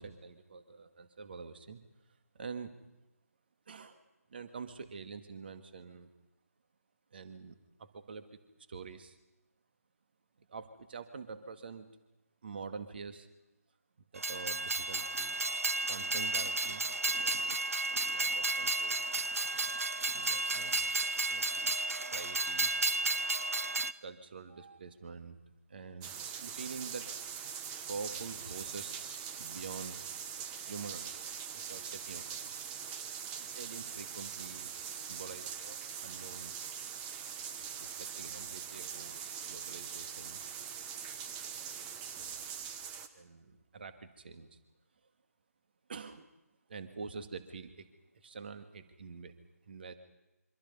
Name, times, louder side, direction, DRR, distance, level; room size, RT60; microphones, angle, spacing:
voice 1, 0.0-1.8 2.3-2.8 3.7-4.0 4.3-6.1 7.1-8.4 8.7-9.2 10.4-11.9 12.4-13.3 14.1-15.4 15.9-16.8 17.2-17.7 18.1-19.0 20.1-20.7 21.3-21.4 22.1-22.7 24.0-25.4 25.7-30.0 30.6-32.6 33.4-36.5 37.6-40.4 43.1-44.6 45.9-46.3 46.7-47.9 48.1-49.3 49.7-49.9, right 5 dB, 40° right, 9 dB, 2.0 m, -46 dB
Train, 14.2-23.9, right 2 dB, 65° right, 1.0 m, -32 dB
sound 1, 26.0-43.1, right 8 dB, 10° right, 1.0 m, -42 dB
26.5 x 25.5 x 5.5 m, 0.98 s
figure-of-eight pair, 155°, 8 cm